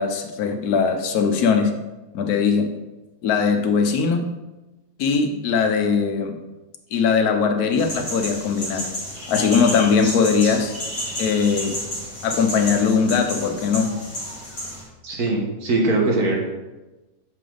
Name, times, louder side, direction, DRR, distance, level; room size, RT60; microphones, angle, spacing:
voice 1, 0.0-1.7 2.1-2.7 3.2-4.3 5.0-6.4 6.9-8.9 9.3-10.7 11.2-11.7 12.2-13.9, left 5 dB, 85° left, 5 dB, 1.3 m, -20 dB
sound 1, 7.8-14.8, equal, 40° left, 2.2 m, -31 dB
voice 2, 15.0-16.4, right 2 dB, 80° right, -1 dB, 1.9 m, -21 dB
6.7 x 5.1 x 3.8 m, 1.1 s
omnidirectional pair, 1.6 m